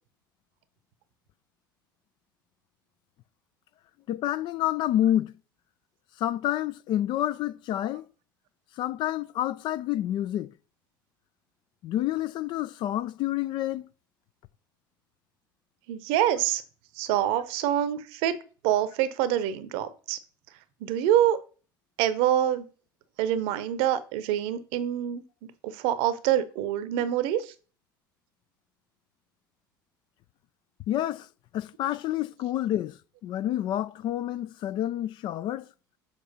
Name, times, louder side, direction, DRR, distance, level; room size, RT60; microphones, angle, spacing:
voice 1, 4.1-5.3 6.2-8.1 8.8-10.5 11.8-13.9 30.9-31.3 31.5-35.7, left 12 dB, 45° left, 0.4 m, -28 dB
voice 2, 15.9-16.6 17.0-18.4 18.6-20.2 20.8-21.4 22.0-22.7 23.2-25.2 25.6-27.5, right 11 dB, 55° right, 0.8 m, -26 dB
7.2 x 4.5 x 4.1 m
figure-of-eight pair, 70°, 11 cm